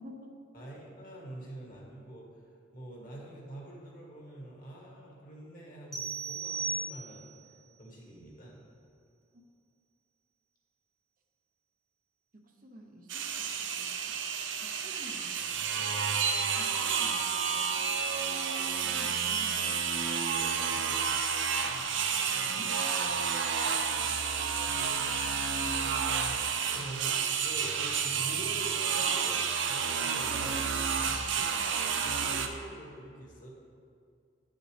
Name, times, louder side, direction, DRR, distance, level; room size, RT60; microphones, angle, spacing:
voice 1, 0.0-0.4 12.4-14.2 14.5-15.9 16.6-17.8 18.8-20.1 22.5-22.7 27.8-27.9 31.3-31.6, equal, 45° right, 2 dB, 0.7 m, -51 dB
voice 2, 0.5-2.4 2.7-7.3 7.8-8.6 20.3-20.9 22.3-22.7 24.6-25.2 26.7-30.7 32.0-33.5, right 1 dB, 45° left, -3 dB, 1.7 m, -46 dB
sound 1, 5.9-7.5, right 4 dB, ahead, 0.6 m, -36 dB
sound 2, 13.1-32.5, right 6 dB, 85° right, 0.6 m, -30 dB
10.5 x 6.5 x 3.3 m, 2.3 s
head